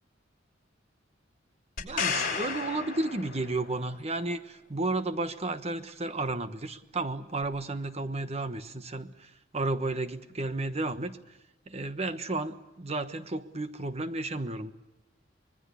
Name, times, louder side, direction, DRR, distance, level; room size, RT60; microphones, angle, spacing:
sound 1, 1.8-3.8 7.4-7.5, left 5 dB, 50° left, 5.2 m, -33 dB
voice 1, 1.8-11.2 11.7-14.7, right 2 dB, 35° right, 10 dB, 1.2 m, -33 dB
25.5 x 20.5 x 8.3 m, 0.95 s
head